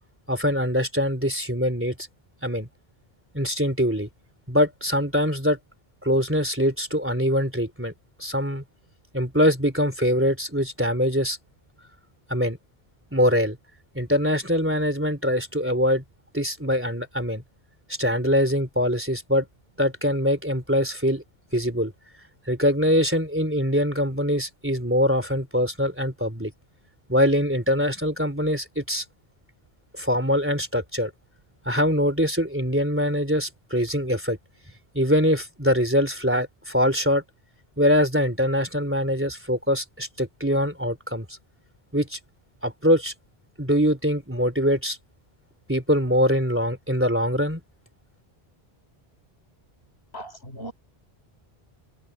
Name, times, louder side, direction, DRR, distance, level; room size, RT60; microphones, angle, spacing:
voice 1, 0.3-1.9 2.4-2.7 3.3-4.1 4.5-5.6 6.0-7.9 8.2-8.6 9.1-11.4 12.3-12.6 13.1-13.6 13.9-16.0 16.3-17.4 18.0-19.4 19.8-21.2 21.5-21.9 22.5-26.5 27.1-29.0 29.9-31.1 31.6-34.4 34.9-37.2 37.8-41.3 41.9-42.2 42.6-43.1 43.6-45.0 45.7-47.6, equal, 10° right, 3.5 m, -23 dB
voice 2, 50.1-50.7, right 1 dB, 80° left, 6.2 m, -38 dB
omnidirectional pair, 1.0 m